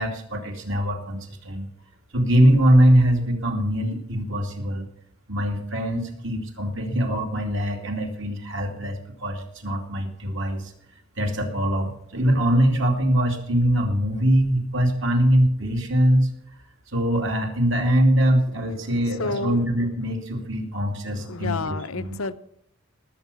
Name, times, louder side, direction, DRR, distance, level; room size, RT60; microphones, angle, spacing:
voice 1, 0.0-1.7 2.1-4.9 5.3-10.7 11.2-16.3 16.9-22.2, equal, 60° right, 2.5 m, -22 dB
voice 2, 19.1-19.6 21.2-22.3, left 3 dB, 80° left, 0.9 m, -30 dB
19.0 x 8.1 x 6.9 m
head